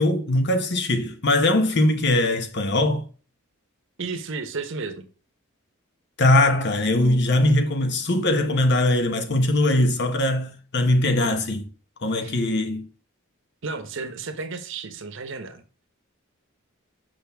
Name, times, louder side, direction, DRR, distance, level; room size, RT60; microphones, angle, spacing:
voice 1, 0.0-3.1 6.2-11.7 12.0-12.9, left 1 dB, 55° left, 0.9 m, -21 dB
voice 2, 4.0-5.1 12.2-12.4 13.6-15.6, right 4 dB, 60° right, 0.9 m, -33 dB
6.4 x 5.7 x 3.4 m
head